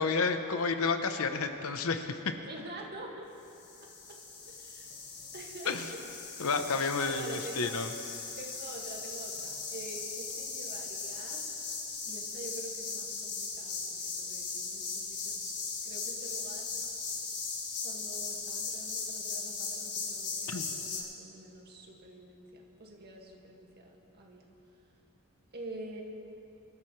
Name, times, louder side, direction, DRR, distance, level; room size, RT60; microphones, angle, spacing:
voice 1, 0.0-2.1 5.7-5.8 6.4-7.9 20.5-20.7, left 4 dB, 65° left, 7 dB, 0.9 m, -30 dB
voice 2, 2.4-3.3 4.1-4.2 4.5-4.9 5.3-6.5 6.9-7.8 8.3-11.6 12.0-16.7 17.8-24.5 25.5-26.0, right 2 dB, 45° right, -1 dB, 2.0 m, -46 dB
sound 1, 3.5-21.0, left 4 dB, 50° left, 2.8 m, -38 dB
25.0 x 13.0 x 3.3 m, 3.0 s
head